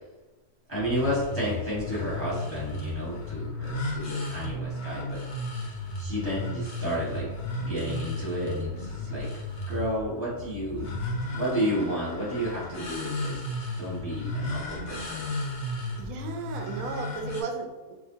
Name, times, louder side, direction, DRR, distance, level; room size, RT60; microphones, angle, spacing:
sound 1, 0.7-17.4, left 1 dB, 45° left, 1.0 m, -34 dB
voice 1, 0.7-5.2 6.0-7.3 7.6-9.3 9.7-10.9 11.3-13.4 13.8-15.2, equal, 10° left, -7 dB, 1.3 m, -31 dB
voice 2, 16.0-17.9, right 5 dB, 70° right, 2 dB, 1.0 m, -35 dB
4.8 x 2.7 x 2.7 m, 1.2 s
omnidirectional pair, 1.6 m